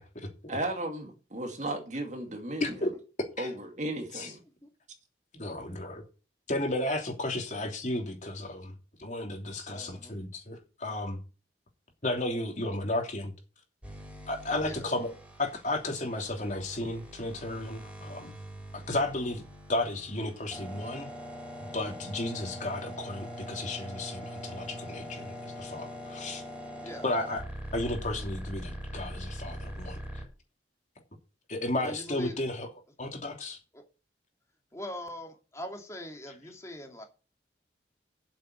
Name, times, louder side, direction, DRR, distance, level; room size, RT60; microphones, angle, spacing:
voice 1, 0.5-2.7 3.4-4.4, right 1 dB, 40° right, 2.3 m, -35 dB
voice 2, 5.3-6.0 6.5-8.7 9.0-11.2 12.0-13.3 14.3-15.1 15.4-18.3 18.7-19.4 19.7-21.1 21.6-26.4 27.0-27.4 27.7-30.0 31.5-32.7 33.0-33.6, left 1 dB, 45° left, 2.9 m, -33 dB
voice 3, 9.7-10.2 14.6-14.8 26.8-27.1 31.8-32.3 33.7-33.8 34.7-37.0, left 1 dB, 15° left, 2.6 m, -41 dB
sound 1, 13.8-30.3, equal, 5° right, 4.3 m, -42 dB
8.6 x 7.8 x 8.2 m
head